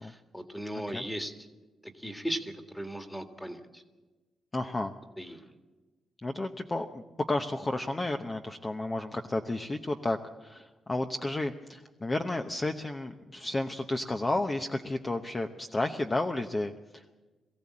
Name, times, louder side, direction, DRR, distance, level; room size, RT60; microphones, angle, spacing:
voice 1, 0.0-1.5 1.8-3.8 5.2-5.5, equal, ahead, 7 dB, 1.8 m, -37 dB
voice 2, 0.7-1.0 4.5-4.9 6.2-7.0 7.3-17.2, left 2 dB, 20° left, 5 dB, 0.9 m, -32 dB
23.0 x 15.5 x 8.5 m, 1.2 s
cardioid pair, 140°, 0 cm